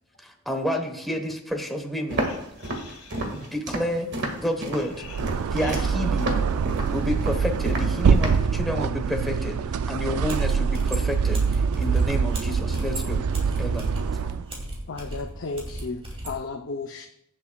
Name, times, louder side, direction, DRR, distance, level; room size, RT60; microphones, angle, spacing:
voice 1, 0.2-2.3 3.3-4.1 4.3-5.1 5.5-6.5 6.9-13.2 13.6-13.9 14.2-14.4, equal, ahead, 3 dB, 1.0 m, -30 dB
Walk footsteps, 2.1-8.5, right 1 dB, 55° right, 1.8 m, -32 dB
voice 2, 2.2-3.5 4.7-5.2 5.6-5.9 14.4-15.0, left 6 dB, 85° left, 3 dB, 1.8 m, -47 dB
sound 1, 4.9-14.5, right 5 dB, 80° right, 0.4 m, -24 dB
sound 2, 10.3-16.4, right 1 dB, 25° right, 2.5 m, -36 dB
voice 3, 14.9-17.1, left 3 dB, 60° left, 4 dB, 0.6 m, -34 dB
21.5 x 7.3 x 2.3 m, 0.80 s
head